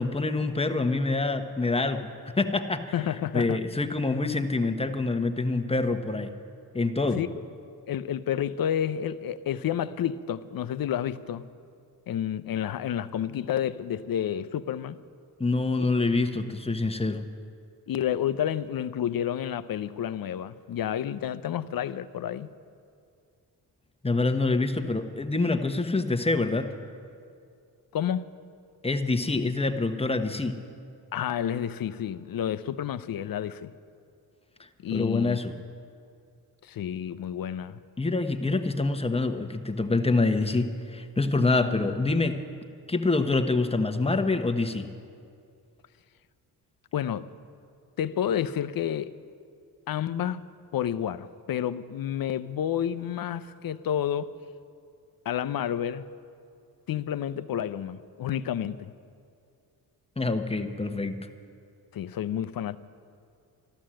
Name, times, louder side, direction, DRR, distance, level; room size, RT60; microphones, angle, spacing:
voice 1, 0.0-2.9 3.3-6.3 6.7-7.2 15.4-17.2 24.0-26.7 28.8-30.6 34.9-35.5 38.0-42.4 42.9-44.9 60.2-61.2, left 3 dB, 15° left, 1.1 m, -26 dB
voice 2, 2.9-3.6 7.2-7.3 7.9-11.5 12.1-15.0 17.9-22.5 27.9-28.2 31.1-33.7 34.8-35.4 36.6-37.8 46.9-47.3 48.0-49.1 49.9-50.4 50.7-54.3 55.3-56.1 56.9-58.9 61.9-62.8, left 10 dB, 55° left, 0.6 m, -30 dB
13.0 x 12.5 x 7.6 m
cardioid pair, 65°, 41 cm